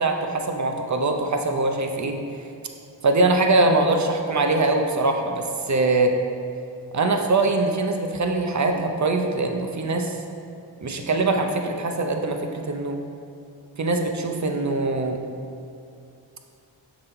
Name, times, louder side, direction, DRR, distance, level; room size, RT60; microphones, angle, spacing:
voice 1, 0.0-2.2 3.0-6.2 6.9-10.2 10.8-13.0 13.8-15.2, right 2 dB, 35° right, 4 dB, 0.7 m, -22 dB
6.3 x 4.1 x 4.3 m, 2.5 s
cardioid pair, 50°, 49 cm